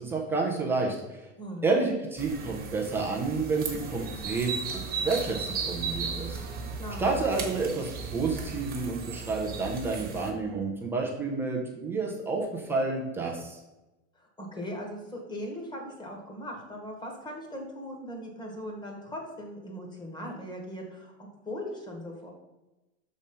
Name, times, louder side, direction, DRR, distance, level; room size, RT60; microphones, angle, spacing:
voice 1, 0.0-1.3 1.6-6.4 7.0-13.6, right 3 dB, 5° right, -1 dB, 0.3 m, -30 dB
voice 2, 1.4-1.7 6.8-7.1 14.1-22.3, equal, 10° left, 1 dB, 1.3 m, -39 dB
sound 1, 2.2-10.3, right 5 dB, 20° right, 1.1 m, -36 dB
6.2 x 4.2 x 5.3 m, 1.0 s
supercardioid pair, 150°, 41 cm